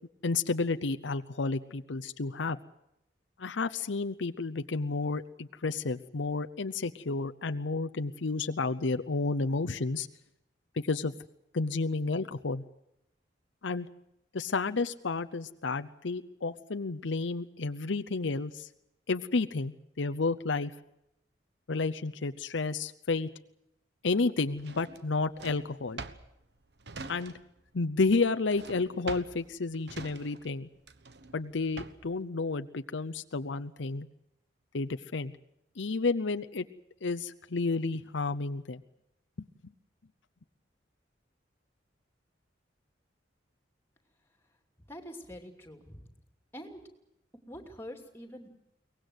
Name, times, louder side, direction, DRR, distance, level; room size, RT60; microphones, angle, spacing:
voice 1, 0.2-2.6 3.4-10.1 10.8-11.1 11.5-12.6 13.6-13.9 14.3-18.7 19.1-20.7 21.7-23.3 24.0-26.0 27.1-27.3 27.7-30.7 31.3-34.1 34.7-35.3 35.8-36.7 37.0-38.8, left 3 dB, 80° left, 9 dB, 0.7 m, -31 dB
Drawer open or close, 24.6-27.7 27.9-32.2, right 3 dB, 60° right, 1.2 m, -45 dB
voice 2, 44.9-46.1 46.5-46.8 47.5-48.5, equal, 15° left, 5 dB, 2.8 m, -45 dB
23.0 x 19.0 x 8.0 m, 0.82 s
head